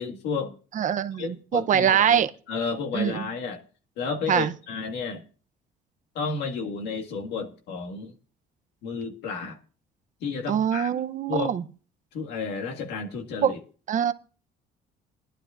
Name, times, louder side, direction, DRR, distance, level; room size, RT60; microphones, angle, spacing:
voice 1, 0.0-0.6 1.2-2.2 2.5-3.6 4.0-5.2 6.2-8.1 8.8-9.6 10.2-10.9 11.3-11.5 12.1-13.6, left 5 dB, 85° left, 1.9 m, -32 dB
voice 2, 0.7-2.3 2.9-3.3 4.3-4.5 10.5-11.6 13.4-13.6 13.9-14.1, right 9 dB, 50° right, 0.7 m, -23 dB
20.0 x 11.5 x 2.5 m
cardioid pair, 110°, 17 cm